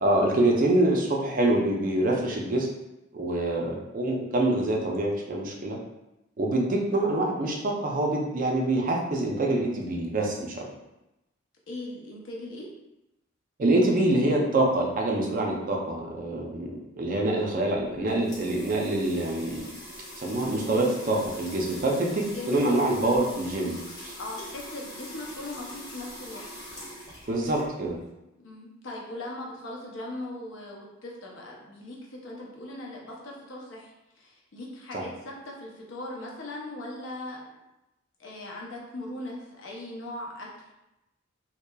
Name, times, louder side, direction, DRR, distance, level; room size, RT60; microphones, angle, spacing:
voice 1, 0.0-2.7 3.1-5.8 6.4-10.6 13.6-19.7 20.2-23.8 24.0-24.1 27.3-28.0 34.9-35.0, right 1 dB, 45° right, -1 dB, 0.5 m, -25 dB
voice 2, 11.7-12.7 22.3-22.7 24.2-26.4 28.4-37.4 38.2-40.5, left 1 dB, 75° left, -2 dB, 0.6 m, -39 dB
sound 1, 17.8-28.1, left 1 dB, 20° left, 0.7 m, -43 dB
2.8 x 2.2 x 2.2 m, 0.92 s
head